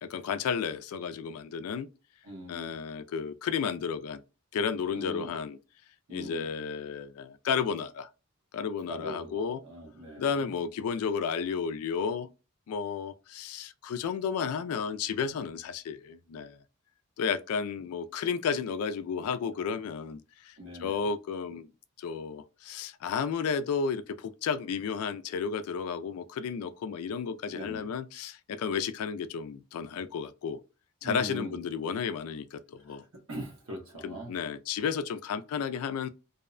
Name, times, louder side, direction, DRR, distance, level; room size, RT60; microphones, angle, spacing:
voice 1, 0.0-1.9 2.5-4.2 4.5-5.6 6.1-8.1 8.5-9.6 10.2-12.3 12.7-16.6 17.2-21.7 22.0-30.6 31.0-33.0 34.0-36.1, left 6 dB, 80° left, 0.3 m, -32 dB
voice 2, 2.2-2.7 4.9-5.3 6.1-6.5 8.9-10.5 20.6-21.1 27.5-27.9 31.0-31.6 32.9-33.0 33.3-34.3, right 1 dB, 70° right, 1.0 m, -41 dB
2.6 x 2.1 x 2.4 m
head